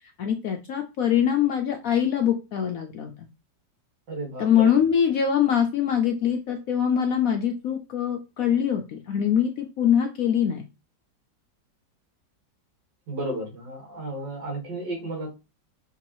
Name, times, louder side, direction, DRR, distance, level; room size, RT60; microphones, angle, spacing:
voice 1, 0.2-3.1 4.4-10.6, left 9 dB, 70° left, 4 dB, 0.8 m, -23 dB
voice 2, 4.1-4.8 13.1-15.3, right 2 dB, 75° right, 0 dB, 2.4 m, -33 dB
5.7 x 3.0 x 3.0 m, 0.27 s
omnidirectional pair, 2.0 m